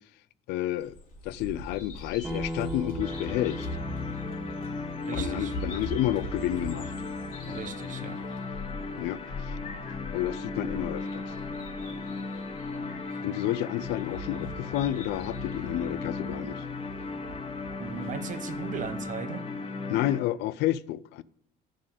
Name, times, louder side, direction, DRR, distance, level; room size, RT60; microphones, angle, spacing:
voice 1, 0.5-1.0 1.2-3.7 5.1-6.9 9.0-9.2 10.1-11.3 13.2-16.6 19.9-21.2, left 13 dB, 85° left, 0.4 m, -30 dB
Bird vocalization bird call bird song, 0.8-18.9, equal, 55° left, 2.8 m, -42 dB
Acoustic guitar, 2.2-7.4, equal, 10° right, 1.5 m, -40 dB
sound 1, 3.0-20.2, left 4 dB, 35° left, 1.3 m, -36 dB
voice 2, 5.0-5.5 7.4-8.2 13.1-13.2 17.8-19.5, right 7 dB, 50° right, 0.9 m, -38 dB
7.2 x 6.6 x 8.0 m
cardioid pair, 110°, 17 cm